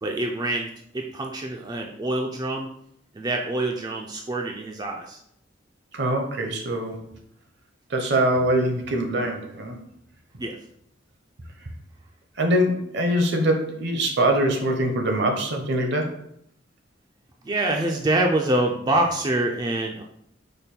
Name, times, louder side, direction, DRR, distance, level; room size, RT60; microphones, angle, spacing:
voice 1, 0.0-2.7 3.1-5.2 10.4-10.6 17.4-20.0, right 1 dB, 20° right, 1 dB, 0.3 m, -25 dB
voice 2, 5.9-7.0 7.9-9.8 12.4-16.2, right 1 dB, 60° right, 4 dB, 0.8 m, -23 dB
5.1 x 2.2 x 4.3 m, 0.73 s
head